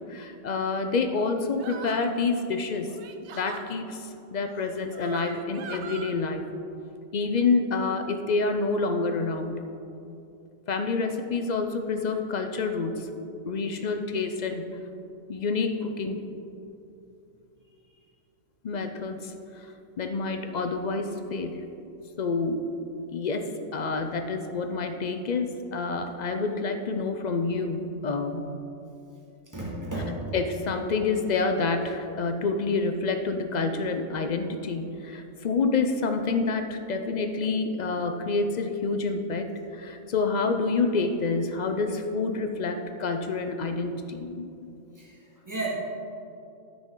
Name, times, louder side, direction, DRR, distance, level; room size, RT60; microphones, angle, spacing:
voice 1, 0.0-2.9 3.3-6.5 7.1-9.6 10.7-13.1 13.4-14.6 15.3-16.2 18.6-19.7 20.0-21.6 22.2-22.6 23.1-28.5 30.3-44.5, left 4 dB, 50° left, 7 dB, 0.5 m, -28 dB
sound 1, 1.6-2.2 2.9-3.7 4.6-6.1, right 7 dB, 65° right, 0.8 m, -41 dB
voice 2, 29.5-30.2 45.0-45.2 45.5-45.7, right 2 dB, 15° right, -5 dB, 1.9 m, -33 dB
13.0 x 6.1 x 3.8 m, 2.7 s
omnidirectional pair, 1.3 m